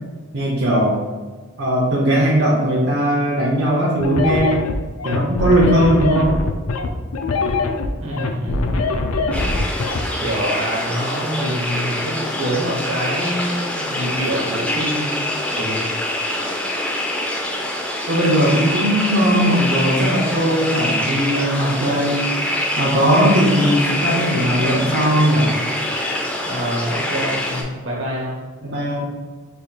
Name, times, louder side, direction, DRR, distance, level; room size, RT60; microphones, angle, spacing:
voice 1, 0.3-1.0 1.6-4.6 5.0-6.3 18.1-22.3 22.8-25.6 28.6-29.0, equal, 55° right, -6 dB, 0.6 m, -18 dB
sound 1, 4.0-10.0, left 3 dB, 90° left, 0.4 m, -22 dB
voice 2, 8.0-8.8 10.2-15.2 15.5-15.9 26.4-28.4, equal, 70° right, -2 dB, 1.1 m, -26 dB
sound 2, 9.3-27.6, left 1 dB, 5° left, 0.3 m, -25 dB
3.4 x 2.3 x 3.8 m, 1.4 s
head